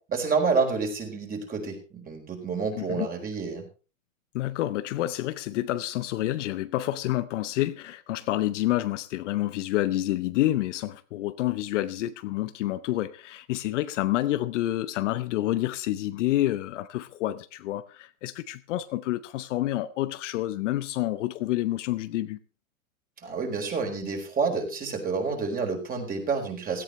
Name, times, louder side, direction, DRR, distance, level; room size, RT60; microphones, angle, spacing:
voice 1, 0.1-3.6 23.2-26.8, right 4 dB, 20° right, 4.4 m, -28 dB
voice 2, 2.8-3.1 4.3-22.4, left 15 dB, 60° left, 0.9 m, -28 dB
16.5 x 14.0 x 3.2 m
hypercardioid pair, 120°, 42 cm